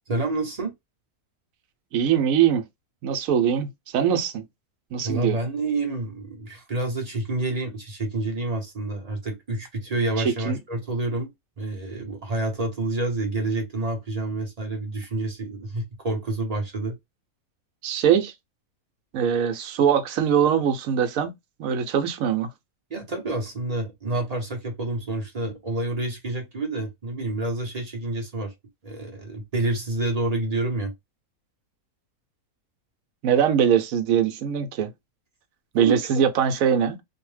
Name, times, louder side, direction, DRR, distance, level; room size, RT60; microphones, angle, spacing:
voice 1, 0.1-0.7 5.0-11.3 11.6-16.9 22.9-28.5 28.8-30.9 35.7-36.2, right 2 dB, 40° right, 0.6 m, -28 dB
voice 2, 1.9-2.6 3.0-4.4 4.9-5.4 10.2-10.6 17.8-18.3 19.1-21.3 21.6-22.5 33.2-34.9 35.7-37.0, right 8 dB, 70° right, 0.9 m, -22 dB
2.6 x 2.1 x 3.2 m
omnidirectional pair, 1.6 m